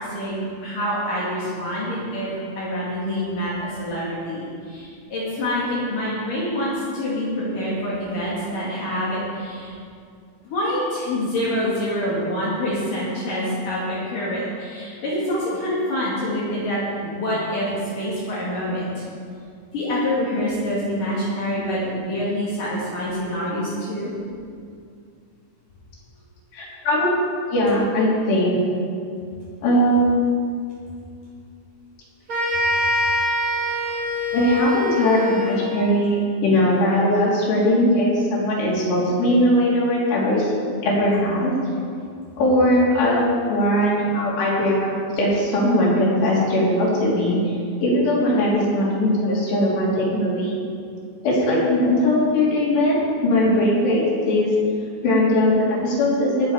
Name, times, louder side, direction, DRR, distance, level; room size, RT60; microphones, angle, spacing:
voice 1, 0.0-2.3 2.6-9.7 10.4-19.0 19.7-24.1, equal, 60° left, -7 dB, 3.6 m, -26 dB
voice 2, 26.5-27.1 27.5-28.6 29.6-30.3 34.3-41.5 42.4-44.9 45.1-47.4 47.8-50.6 51.2-53.0 53.2-54.5 55.0-56.5, left 1 dB, 90° left, -6 dB, 5.1 m, -20 dB
sound 1, 32.3-35.9, left 1 dB, 35° right, 3.2 m, -24 dB
19.5 x 7.4 x 4.9 m, 2.3 s
omnidirectional pair, 4.7 m